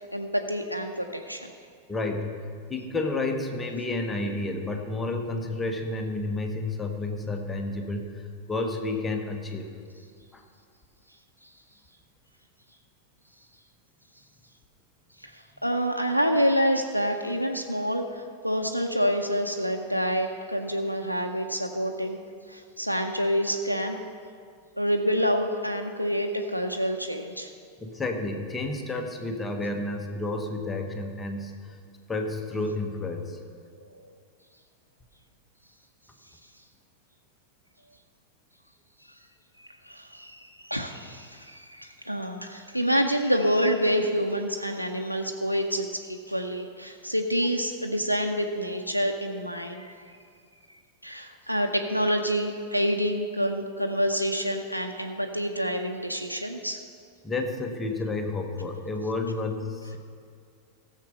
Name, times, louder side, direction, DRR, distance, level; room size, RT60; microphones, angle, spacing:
voice 1, 0.1-1.5 11.4-11.5 15.2-22.2 22.5-24.0 24.8-27.5 39.8-50.2 51.0-56.8, equal, 90° left, 3 dB, 0.6 m, -27 dB
voice 2, 1.9-9.7 10.3-10.4 27.8-31.8 32.1-33.4 57.2-60.0, left 2 dB, 15° left, 3 dB, 1.2 m, -31 dB
15.0 x 7.3 x 5.5 m, 2.2 s
figure-of-eight pair, 90°, 0 cm